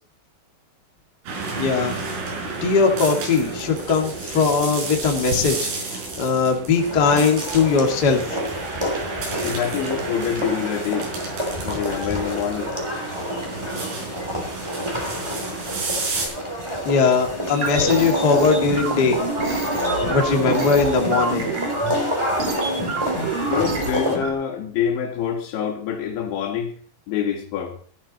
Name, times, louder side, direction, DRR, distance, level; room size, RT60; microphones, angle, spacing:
sound 1, 1.3-16.3, right 3 dB, 90° right, 7.9 m, -32 dB
voice 1, 1.5-2.0 2.6-8.4 16.8-19.2 20.1-21.6, left 5 dB, 45° left, 2 dB, 1.3 m, -20 dB
sound 2, 6.7-24.1, equal, 5° right, 2.6 m, -29 dB
voice 2, 9.4-11.1 11.6-12.8 23.5-26.7 27.1-27.8, left 8 dB, 75° left, 3 dB, 4.5 m, -26 dB
sound 3, 17.5-24.3, right 2 dB, 40° right, 4.2 m, -26 dB
16.0 x 14.0 x 4.2 m, 0.43 s
omnidirectional pair, 5.5 m